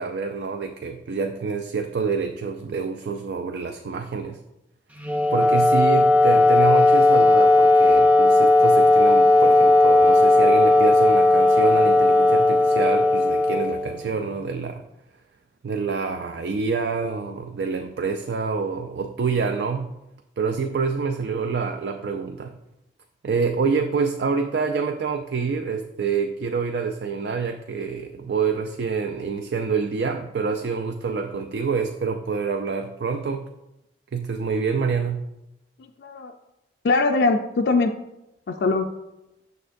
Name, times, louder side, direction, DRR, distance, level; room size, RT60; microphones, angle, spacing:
voice 1, 0.0-4.4 5.3-14.8 15.6-19.9 20.4-22.5 23.2-33.4 34.1-35.2, right 5 dB, 65° right, 6 dB, 0.4 m, -27 dB
Wind instrument woodwind instrument, 5.0-14.3, left 2 dB, 10° right, 0.5 m, -16 dB
voice 2, 35.8-36.3 36.8-38.0 38.5-38.9, left 3 dB, 60° left, 4 dB, 0.4 m, -22 dB
6.5 x 6.5 x 2.6 m, 0.90 s
head